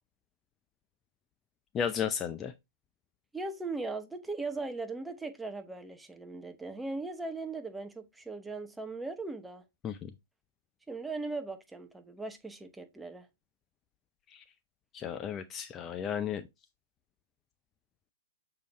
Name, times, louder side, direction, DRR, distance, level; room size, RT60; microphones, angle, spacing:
voice 1, 1.7-2.5 9.8-10.1 14.3-14.4 14.9-16.4, left 8 dB, 25° left, 0.5 m, -34 dB
voice 2, 3.3-9.6 10.9-13.3, right 3 dB, 5° right, 0.9 m, -39 dB
6.7 x 4.8 x 3.0 m
figure-of-eight pair, 110°, 0 cm